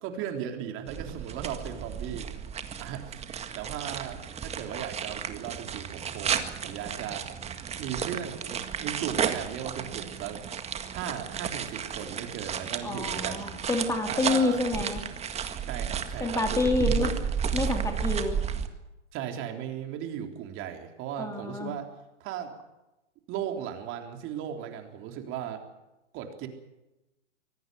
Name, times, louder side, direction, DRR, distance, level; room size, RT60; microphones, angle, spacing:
voice 1, 0.0-2.3 2.8-3.2 3.6-7.3 7.8-10.4 10.9-13.4 14.1-14.6 15.7-17.3 19.1-21.9 22.2-22.5 23.3-25.6 26.1-26.5, right 9 dB, 35° right, 4 dB, 3.7 m, -37 dB
sound 1, 0.9-18.7, right 8 dB, 15° right, 1.8 m, -33 dB
voice 2, 12.8-15.0 16.2-17.1 17.5-18.4 21.2-21.7, left 3 dB, 10° left, 4 dB, 2.4 m, -28 dB
24.5 x 17.5 x 7.8 m, 0.98 s
hypercardioid pair, 115°, 36 cm